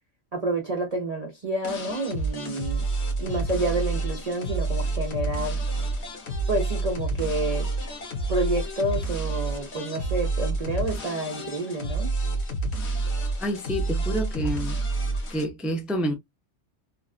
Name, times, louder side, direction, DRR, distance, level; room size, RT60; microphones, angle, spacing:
voice 1, 0.3-2.8 3.2-5.6 6.5-7.7 8.3-12.1, right 2 dB, 40° right, 0.7 m, -29 dB
sound 1, 1.6-15.4, right 2 dB, 65° left, 1.2 m, -29 dB
voice 2, 13.4-14.8 15.3-16.1, equal, ahead, 0.4 m, -28 dB
3.2 x 2.4 x 2.3 m
omnidirectional pair, 1.2 m